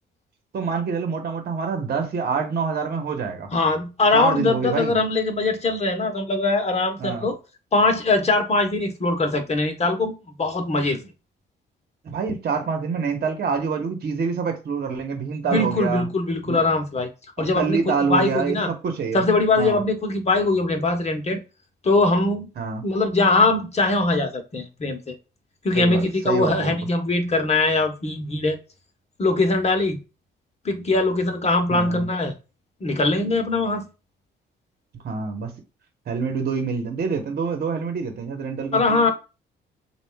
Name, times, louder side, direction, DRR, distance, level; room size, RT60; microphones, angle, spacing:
voice 1, 0.5-3.5 4.1-5.0 7.0-7.3 12.0-16.1 16.5-16.6 17.4-19.2 19.6-19.8 22.6-22.9 25.7-26.8 31.7-32.1 35.0-35.6 36.1-39.1, right 5 dB, 50° right, 1.1 m, -26 dB
voice 2, 3.5-7.4 7.7-10.1 10.4-11.0 15.5-17.1 17.4-17.8 18.1-18.7 19.1-21.4 21.8-22.5 22.8-25.1 25.6-28.6 29.2-30.0 30.6-32.3 32.8-33.9 38.7-39.1, left 3 dB, 30° left, 1.1 m, -21 dB
6.8 x 2.5 x 2.3 m
cardioid pair, 90°, 20 cm